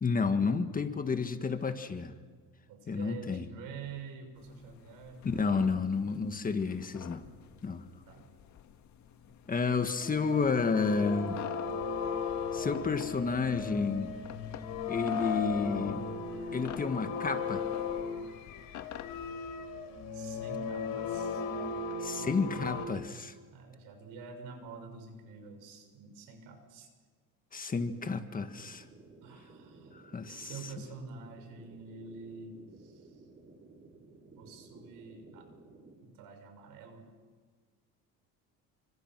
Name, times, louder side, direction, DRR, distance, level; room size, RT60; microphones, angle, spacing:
voice 1, 0.0-2.1 2.9-3.5 5.2-7.2 7.6-7.8 9.5-11.4 12.5-14.1 14.9-16.1 16.5-17.6 22.0-23.3 27.5-28.8 29.9-30.5, left 4 dB, 25° left, 8 dB, 1.8 m, -31 dB
voice 2, 2.7-5.8 8.1-8.3 20.1-21.4 22.1-22.8 23.5-26.9 28.2-28.3 29.2-30.0 30.2-33.2 34.4-35.5 36.0-37.1, right 4 dB, 85° right, 5 dB, 6.6 m, -47 dB
sound 1, 4.4-19.3, left 9 dB, 60° left, 1.9 m, -50 dB
sound 2, 10.0-22.9, left 5 dB, 85° left, 4.0 m, -36 dB
sound 3, 28.5-35.9, right 3 dB, 30° right, 7.0 m, -56 dB
30.0 x 25.5 x 6.3 m, 1.5 s
cardioid pair, 120°, 32 cm